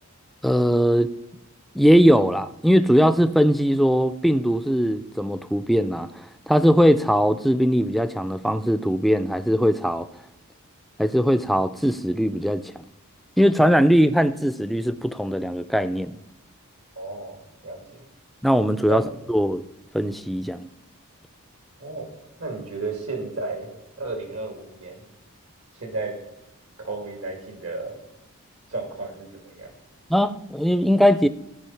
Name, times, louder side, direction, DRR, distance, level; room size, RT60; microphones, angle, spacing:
voice 1, 0.4-1.1 1.7-10.1 11.0-12.8 13.4-16.2 18.4-19.0 19.3-19.6 19.9-20.7 30.1-31.3, equal, ahead, 0.3 m, -20 dB
voice 2, 17.0-18.0 18.9-19.0 21.8-22.1 22.4-23.7 24.0-25.0 25.8-26.1 26.8-28.0 28.7-29.7, right 3 dB, 80° right, 2.6 m, -33 dB
14.0 x 5.2 x 5.7 m
head